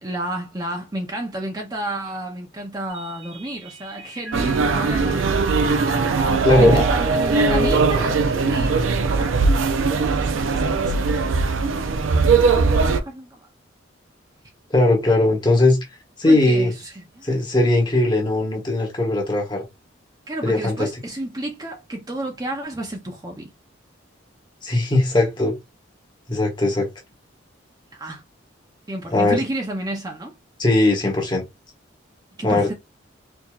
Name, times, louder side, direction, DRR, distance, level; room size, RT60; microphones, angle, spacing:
voice 1, 0.0-5.3 6.1-9.5 9.9-11.1 12.3-13.4 16.3-17.4 20.3-23.5 27.9-28.2 28.9-30.3 32.4-32.7, right 1 dB, 20° right, 0.5 m, -31 dB
Mallet percussion, 2.9-9.4, right 1 dB, 65° right, 1.1 m, -29 dB
sound 1, 4.3-13.0, right 4 dB, 85° right, 0.5 m, -20 dB
voice 2, 6.4-6.9 14.7-15.8 16.2-16.7 17.2-19.6 20.4-20.9 24.6-25.5 26.3-26.9 29.1-29.4 30.6-31.4 32.4-32.7, left 2 dB, 25° left, 1.2 m, -19 dB
4.5 x 2.7 x 2.3 m
head